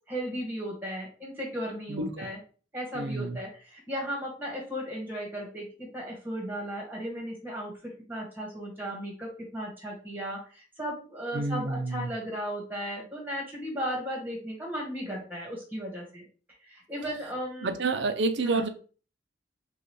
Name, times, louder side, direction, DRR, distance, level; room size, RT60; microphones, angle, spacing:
voice 1, 0.1-2.4 2.7-16.3 16.6-17.7 18.4-18.6, equal, 10° right, 1.5 m, -36 dB
voice 2, 1.9-2.3 2.9-3.4 11.3-12.1 17.6-18.7, right 3 dB, 80° right, 0.5 m, -29 dB
5.1 x 2.4 x 3.1 m
head